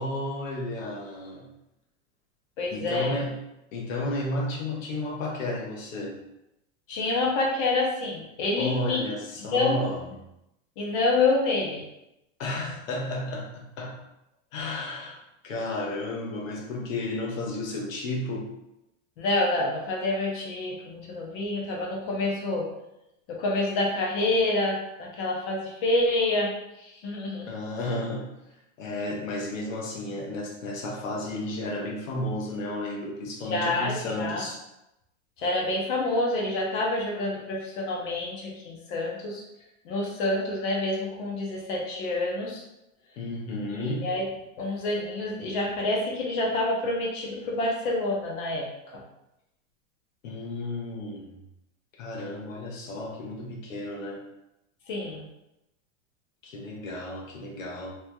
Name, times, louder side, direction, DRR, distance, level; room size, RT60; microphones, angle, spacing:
voice 1, 0.0-1.5 2.7-3.4 3.7-6.2 8.5-10.0 12.4-14.0 14.5-18.5 27.5-28.3 28.8-34.6 43.2-44.1 50.2-51.3 52.0-54.2 56.4-57.9, left 1 dB, 75° left, 0 dB, 1.0 m, -32 dB
voice 2, 2.6-3.1 6.9-9.0 9.4-9.8 10.8-11.8 19.2-22.6 23.3-27.5 33.5-34.4 35.4-39.4 39.8-42.6 43.8-44.2 44.6-48.7 54.9-55.3, left 2 dB, 40° left, -2 dB, 0.7 m, -27 dB
3.2 x 2.9 x 2.2 m, 0.89 s
supercardioid pair, 160°, 40 cm